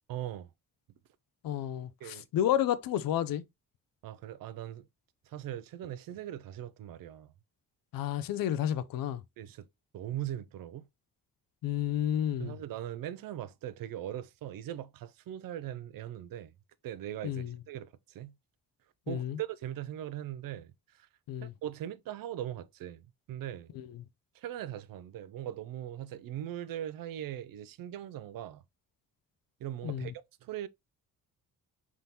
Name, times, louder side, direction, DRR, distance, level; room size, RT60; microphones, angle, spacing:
voice 1, 0.1-0.5 2.0-2.3 4.0-4.9 5.3-7.3 9.4-9.7 9.9-10.9 12.4-16.5 16.8-18.3 19.1-21.1 21.4-23.7 24.3-28.6 29.6-30.1 30.4-30.7, right 11 dB, 65° right, 0.5 m, -40 dB
voice 2, 1.4-3.4 7.9-9.2 11.6-12.5 17.2-17.5 19.1-19.4 21.3-21.5 23.8-23.9 29.8-30.1, left 11 dB, 65° left, 0.6 m, -31 dB
4.0 x 3.6 x 2.8 m
supercardioid pair, 65°, 37 cm